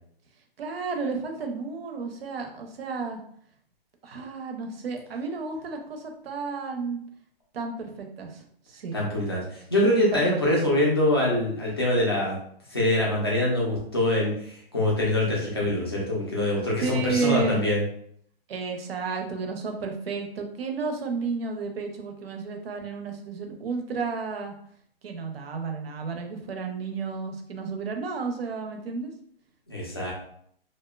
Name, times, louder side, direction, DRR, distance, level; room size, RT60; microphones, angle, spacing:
voice 1, 0.6-3.2 4.0-7.0 7.5-9.0 10.3-10.6 16.8-17.6 18.5-24.5 25.0-29.1, right 4 dB, 70° right, 4 dB, 0.6 m, -32 dB
voice 2, 8.9-9.4 9.7-12.4 12.7-14.3 14.7-17.8 29.7-30.1, left 1 dB, 25° left, -4 dB, 0.4 m, -24 dB
2.7 x 2.1 x 2.2 m, 0.65 s
hypercardioid pair, 180°, 31 cm